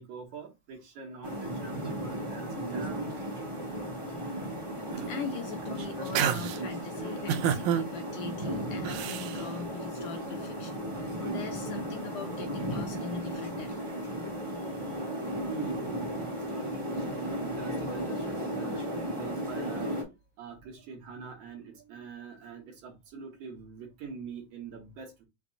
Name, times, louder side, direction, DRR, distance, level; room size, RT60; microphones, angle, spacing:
voice 1, 0.0-3.3 15.4-20.0 20.4-25.2, right 6 dB, 70° right, 2.4 m, -44 dB
sound 1, 1.2-20.0, equal, 30° right, 0.5 m, -35 dB
voice 2, 4.8-13.7 14.6-15.0, left 6 dB, 80° left, 1.6 m, -41 dB
sound 2, 4.9-5.4 5.8-6.6 7.3-7.8 8.8-9.4, right 9 dB, 85° right, 2.0 m, -29 dB
5.9 x 2.2 x 3.7 m
omnidirectional pair, 3.3 m